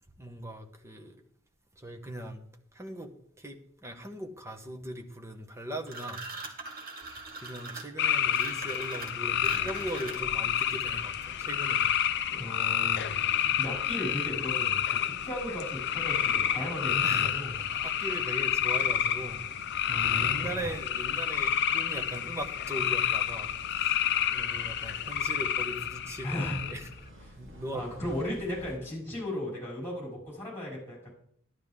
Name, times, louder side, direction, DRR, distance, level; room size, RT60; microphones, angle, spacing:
voice 1, 0.2-1.2 1.8-2.4 2.7-6.2 7.3-12.0 17.0-19.5 20.2-26.9 27.4-28.0, right 1 dB, 15° right, 4 dB, 1.1 m, -39 dB
sound 1, 5.9-10.5, right 3 dB, 45° right, 1.8 m, -41 dB
sound 2, 8.0-26.9, left 10 dB, 55° left, 0.6 m, -29 dB
sound 3, 9.3-28.8, equal, 65° right, 3.6 m, -49 dB
voice 2, 12.3-13.1 13.6-17.5 19.9-20.5 26.2-26.6 27.3-27.4 27.7-31.1, left 1 dB, 10° left, -4 dB, 5.4 m, -36 dB
12.0 x 10.5 x 3.7 m, 0.66 s
head